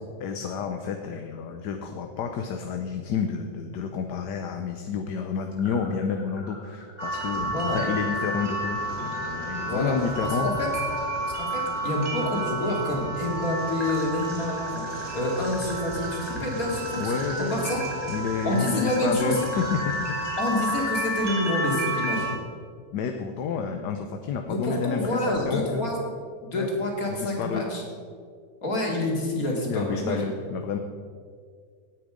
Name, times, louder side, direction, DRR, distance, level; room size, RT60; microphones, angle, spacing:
voice 1, 0.2-10.5 17.0-17.8 18.1-20.3 22.9-25.9 26.5-26.7 27.1-27.7 29.7-30.8, left 6 dB, 75° left, 5 dB, 1.5 m, -30 dB
sound 1, 5.6-12.3 13.8-22.1, left 1 dB, 5° left, 3.2 m, -42 dB
sound 2, 7.0-22.4, right 2 dB, 55° right, 3.0 m, -31 dB
voice 2, 7.3-7.8 9.6-9.9 10.2-10.7 11.3-14.8 15.1-17.8 18.4-19.3 20.4-22.3 24.5-25.9 26.4-27.8 28.6-30.3, left 1 dB, 55° left, -2 dB, 3.3 m, -28 dB
17.5 x 9.2 x 5.1 m, 2.1 s
omnidirectional pair, 1.8 m